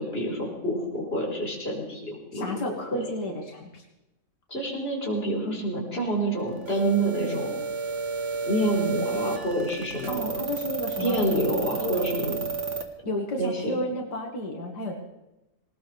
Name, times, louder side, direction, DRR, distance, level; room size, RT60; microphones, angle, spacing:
voice 1, 0.0-3.0 4.5-7.5 8.4-10.3 11.0-12.4 13.4-13.7, right 1 dB, 35° left, -2 dB, 4.6 m, -28 dB
voice 2, 2.3-3.8 10.1-12.1 13.1-14.9, left 1 dB, 90° left, 1 dB, 2.4 m, -32 dB
sound 1, 6.7-12.8, right 5 dB, 50° right, 1.7 m, -31 dB
20.0 x 19.5 x 3.4 m, 0.97 s
omnidirectional pair, 1.7 m